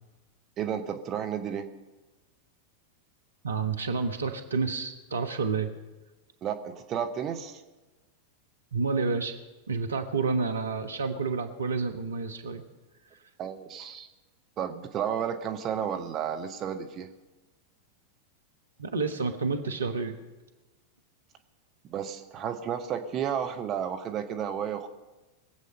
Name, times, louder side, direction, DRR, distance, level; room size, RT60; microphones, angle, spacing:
voice 1, 0.6-1.7 6.4-7.6 13.4-14.1 14.6-17.1 21.8-24.9, right 8 dB, 30° right, 7 dB, 1.1 m, -32 dB
voice 2, 3.4-5.7 8.7-9.3 9.7-12.6 18.8-20.1, right 4 dB, 75° right, 5 dB, 1.2 m, -29 dB
22.5 x 8.1 x 5.6 m, 1.1 s
figure-of-eight pair, 90°, 0 cm